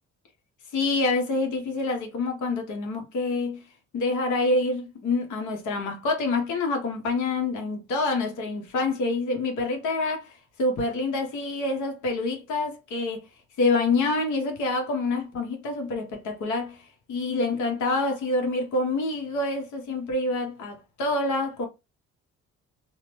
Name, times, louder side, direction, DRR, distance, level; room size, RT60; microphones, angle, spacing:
voice 1, 0.7-3.6 3.9-13.2 13.6-21.7, left 2 dB, 75° left, 1.1 m, -27 dB
2.9 x 2.0 x 3.1 m
cardioid pair, 90°, 30 cm